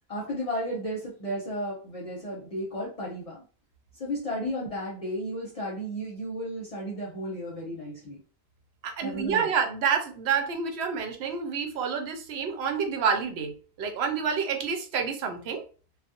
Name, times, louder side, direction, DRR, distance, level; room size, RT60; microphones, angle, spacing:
voice 1, 0.1-3.4 4.0-8.2 9.0-9.5, equal, 40° left, 0.7 m, -33 dB
voice 2, 8.8-15.6, right 6 dB, 85° right, 0.8 m, -28 dB
2.4 x 2.0 x 2.7 m
omnidirectional pair, 1.0 m